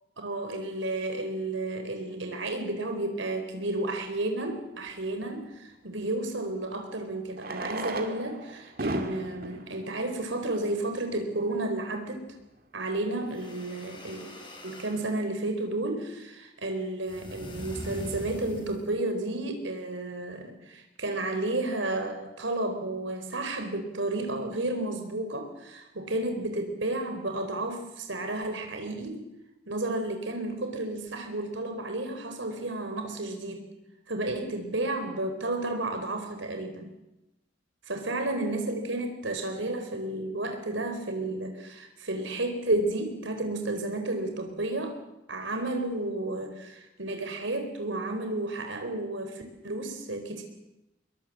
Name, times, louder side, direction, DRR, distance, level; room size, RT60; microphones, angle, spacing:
voice 1, 0.2-12.3 12.7-14.3 14.6-29.3 29.7-33.7 34.1-36.9 37.9-45.0 45.3-50.4, right 2 dB, 80° right, 6 dB, 4.1 m, -32 dB
Fireworks, 3.8-3.9 6.1-6.2 7.3-11.1 11.8-11.9 12.1-12.2 12.4-12.5 13.0-13.3, right 2 dB, 50° right, 2.2 m, -36 dB
sound 1, 13.2-15.0 17.1-19.0, equal, 25° left, 4.9 m, -42 dB
23.0 x 21.5 x 7.5 m, 0.92 s
head